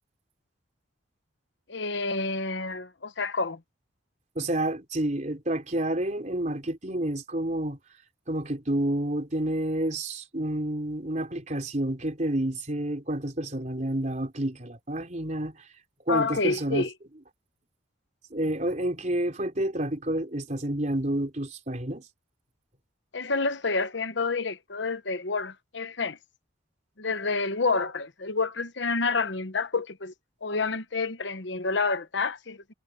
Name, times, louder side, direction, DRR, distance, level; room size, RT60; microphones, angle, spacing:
voice 1, 1.7-3.6 16.1-16.9 23.1-26.2 27.0-30.1 30.4-32.6, left 4 dB, 65° left, 1.1 m, -28 dB
voice 2, 4.4-7.8 8.3-15.6 16.1-16.9 18.3-22.1, right 1 dB, 40° right, 4.0 m, -29 dB
head